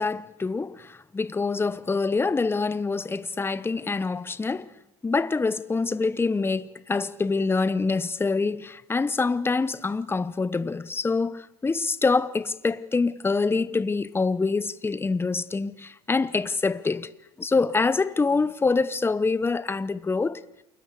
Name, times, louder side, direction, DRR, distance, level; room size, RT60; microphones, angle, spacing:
voice 1, 0.0-4.7 5.0-17.1 17.4-20.4, left 4 dB, 15° left, 1.0 m, -25 dB
28.5 x 22.0 x 8.4 m
supercardioid pair, 100°, 15 cm